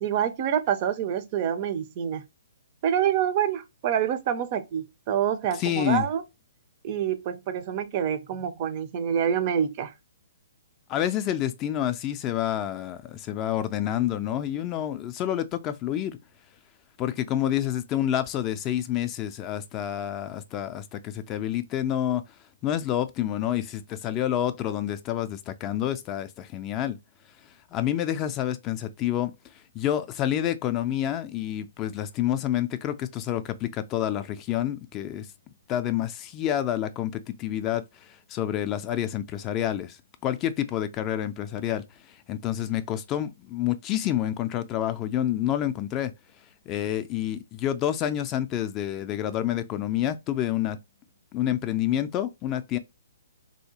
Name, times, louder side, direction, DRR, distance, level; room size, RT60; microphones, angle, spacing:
voice 1, 0.0-2.2 2.8-6.2 6.8-9.9, right 9 dB, 40° right, 0.4 m, -27 dB
voice 2, 5.6-6.1 10.9-16.2 17.0-22.2 22.6-27.0 27.7-29.3 29.7-35.3 35.7-41.8 42.3-46.1 46.7-50.8 51.3-52.8, left 11 dB, 25° left, 0.3 m, -28 dB
3.2 x 2.7 x 2.8 m
hypercardioid pair, 135°, 0 cm